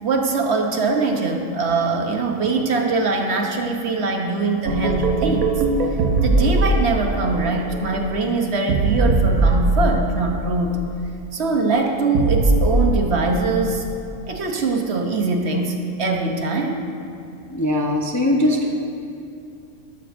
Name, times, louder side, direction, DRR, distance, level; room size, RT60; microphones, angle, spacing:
voice 1, 0.0-5.6 6.2-10.8 11.3-13.9 14.3-16.9, right 3 dB, 55° right, 3 dB, 1.0 m, -22 dB
sound 1, 4.7-10.5 12.1-13.2, right 2 dB, 90° right, 1.3 m, -20 dB
voice 2, 17.5-18.8, left 1 dB, 20° left, -1 dB, 0.5 m, -20 dB
12.0 x 12.0 x 2.5 m, 2.6 s
omnidirectional pair, 1.4 m